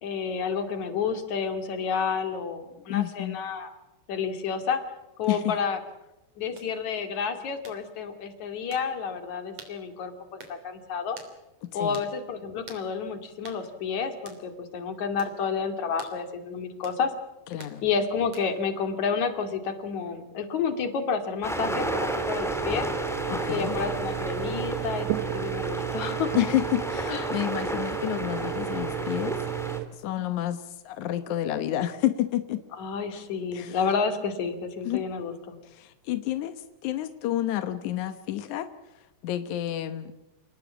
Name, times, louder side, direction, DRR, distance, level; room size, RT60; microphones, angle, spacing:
voice 1, 0.0-3.7 4.1-4.8 5.2-5.8 6.4-11.2 11.7-17.1 17.8-22.9 23.5-26.3 27.1-27.3 32.7-35.6, left 6 dB, 50° left, 7 dB, 3.2 m, -30 dB
voice 2, 2.9-3.4 5.3-5.5 11.8-12.0 17.5-17.8 23.3-23.8 26.3-29.4 29.9-32.6 33.5-33.8 34.8-35.0 35.7-38.7 39.0-40.1, left 13 dB, 75° left, 10 dB, 1.8 m, -29 dB
sound 1, 6.6-6.7 7.6-7.8 8.7-8.9 9.6-9.8 10.4-10.6 11.2-11.3 11.9-12.1 12.7-12.9 13.4-13.6 14.3-14.4 15.2-15.4 16.0-16.2 16.8-17.0 17.6-17.8 18.3-18.6, right 4 dB, 40° right, 4.0 m, -46 dB
sound 2, 21.4-29.8, equal, ahead, 1.1 m, -33 dB
sound 3, 21.6-29.9, right 14 dB, 80° right, 1.8 m, -33 dB
28.0 x 19.0 x 7.4 m, 0.99 s
omnidirectional pair, 5.0 m